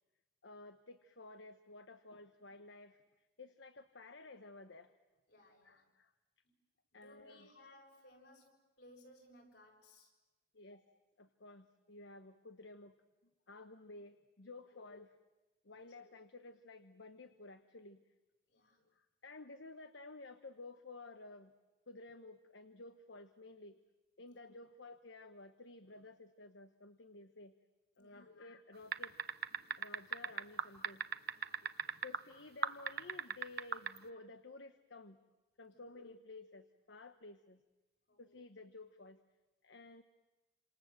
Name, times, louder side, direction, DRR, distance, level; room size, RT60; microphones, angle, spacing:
voice 1, 0.4-4.9 5.6-6.1 6.9-7.5 10.5-10.8 11.2-13.0 13.5-15.1 15.6-18.0 18.8-21.5 21.9-23.8 24.2-27.6 28.0-29.1 29.8-31.0 31.6-35.2 35.6-37.6 38.2-39.2 39.6-40.0, left 2 dB, 85° left, 9 dB, 1.1 m, -54 dB
voice 2, 5.3-5.8 6.4-6.6 6.9-10.1 10.7-10.8 15.7-15.8 18.5-18.8 24.2-24.4 28.0-28.3 31.3-31.7 35.7-35.9 38.1-38.2, left 1 dB, 70° left, 1 dB, 7.3 m, -62 dB
sound 1, 28.9-32.2 32.6-34.0, right 6 dB, 55° right, 0.9 m, -37 dB
28.5 x 27.0 x 7.6 m, 1.1 s
head